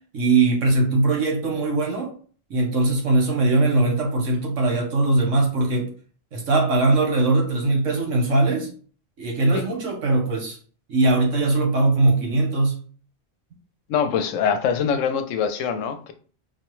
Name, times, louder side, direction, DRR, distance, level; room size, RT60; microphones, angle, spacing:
voice 1, 0.1-2.1 2.5-5.9 6.3-8.7 9.2-10.6 10.9-12.8, right 2 dB, 85° right, 1 dB, 1.4 m, -20 dB
voice 2, 13.9-16.1, left 7 dB, 85° left, 8 dB, 0.9 m, -23 dB
4.6 x 2.2 x 3.0 m, 0.42 s
omnidirectional pair, 1.3 m